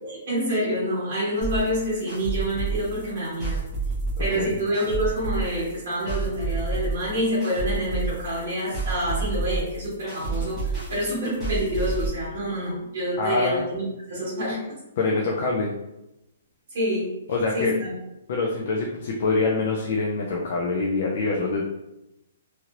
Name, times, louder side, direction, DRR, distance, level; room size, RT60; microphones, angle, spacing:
voice 1, 0.0-3.6 4.2-14.8 16.7-17.1 17.5-17.9, equal, 50° right, -9 dB, 1.2 m, -27 dB
sound 1, 1.4-12.1, right 3 dB, 5° right, 1.0 m, -29 dB
voice 2, 13.2-13.6 15.0-15.7 17.3-17.7 18.3-21.7, left 3 dB, 45° left, -2 dB, 0.4 m, -25 dB
3.0 x 2.9 x 2.5 m, 0.92 s
hypercardioid pair, 170°, 0 cm